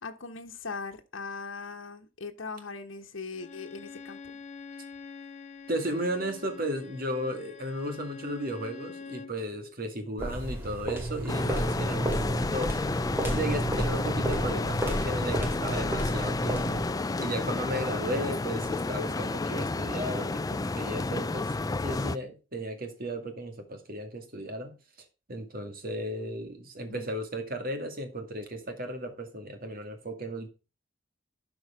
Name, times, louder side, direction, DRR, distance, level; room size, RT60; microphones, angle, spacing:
voice 1, 0.0-4.2 26.9-27.1, left 4 dB, 80° left, 1.1 m, -40 dB
Bowed string instrument, 3.3-9.4, left 5 dB, 35° left, 0.9 m, -45 dB
voice 2, 5.7-12.7 13.3-16.9 17.2-21.5 21.8-24.8 25.3-30.5, right 1 dB, 50° right, 2.1 m, -35 dB
sound 1, 10.2-17.0, right 1 dB, 10° right, 2.4 m, -32 dB
sound 2, 11.3-22.2, left 3 dB, 20° left, 0.4 m, -31 dB
12.0 x 4.8 x 4.9 m
head